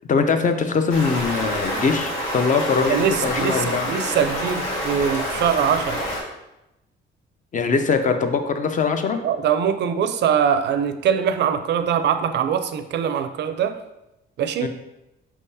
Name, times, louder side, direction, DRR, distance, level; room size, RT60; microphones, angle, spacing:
voice 1, 0.1-3.9 7.5-9.2 14.6-14.7, left 5 dB, 40° left, 7 dB, 0.5 m, -22 dB
Stream, 0.9-6.2, equal, 80° left, 1.3 m, -27 dB
voice 2, 2.9-6.0 9.2-13.8 14.4-14.7, right 8 dB, 60° right, 10 dB, 0.4 m, -22 dB
4.5 x 3.6 x 2.7 m, 0.93 s
cardioid pair, 90°, 20 cm